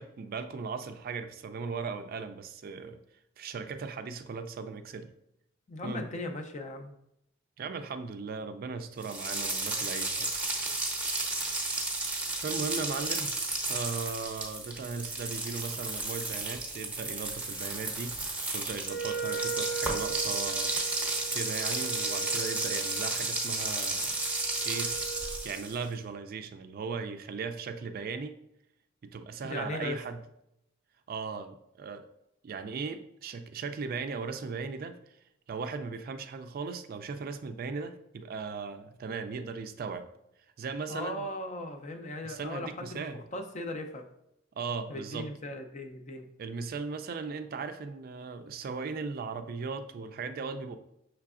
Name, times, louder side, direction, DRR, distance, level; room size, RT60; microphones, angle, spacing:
voice 1, 0.0-3.0 3.4-5.1 5.8-6.1 7.6-10.4 12.4-20.7 21.3-24.2 24.7-25.0 25.4-28.4 29.0-30.2 31.1-32.1 32.4-35.0 35.5-40.1 40.6-41.2 42.2-43.2 44.6-45.3 46.4-50.8, right 5 dB, 50° right, 9 dB, 0.3 m, -37 dB
voice 2, 5.7-6.9 29.4-30.0 40.9-44.1 44.9-46.3, left 1 dB, 35° left, 5 dB, 0.5 m, -38 dB
sound 1, 9.0-25.8, right 2 dB, 5° right, 0.7 m, -33 dB
Wind instrument woodwind instrument, 18.8-25.5, right 6 dB, 70° left, 1.5 m, -39 dB
5.7 x 3.2 x 2.4 m, 0.81 s
head